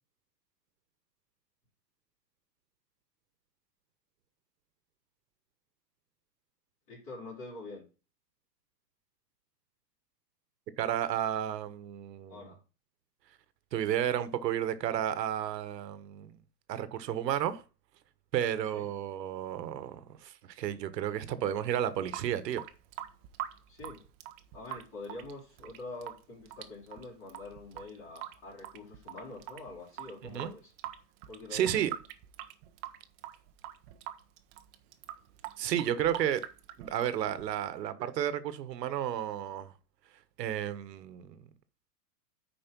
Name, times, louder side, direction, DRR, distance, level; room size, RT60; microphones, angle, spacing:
voice 1, 6.9-7.8 12.3-12.6 18.7-18.9 23.7-24.0 24.5-30.7 31.3-31.8, left 2 dB, 30° left, 4.1 m, -45 dB
voice 2, 10.8-12.5 13.7-16.4 16.7-17.6 18.3-22.6 30.3-30.5 31.5-31.9 35.6-36.4 36.8-39.7 40.4-41.4, right 10 dB, 80° right, 1.4 m, -32 dB
Water tap faucet / Sink (filling or washing) / Drip, 21.9-37.8, right 13 dB, 35° right, 0.9 m, -45 dB
9.2 x 5.0 x 5.3 m
supercardioid pair, 155°, 49 cm